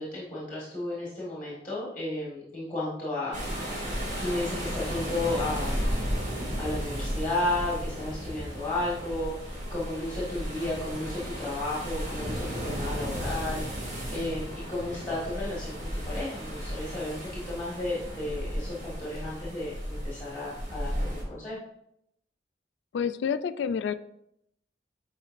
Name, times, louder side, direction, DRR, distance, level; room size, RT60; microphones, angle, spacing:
voice 1, 0.0-3.7 4.2-5.8 6.6-13.6 14.1-21.6, left 2 dB, 10° left, -7 dB, 1.5 m, -33 dB
sound 1, 3.3-21.2, equal, 50° right, 1.9 m, -34 dB
voice 2, 22.9-23.9, left 7 dB, 85° left, 12 dB, 0.3 m, -28 dB
8.7 x 4.4 x 2.5 m, 0.77 s
head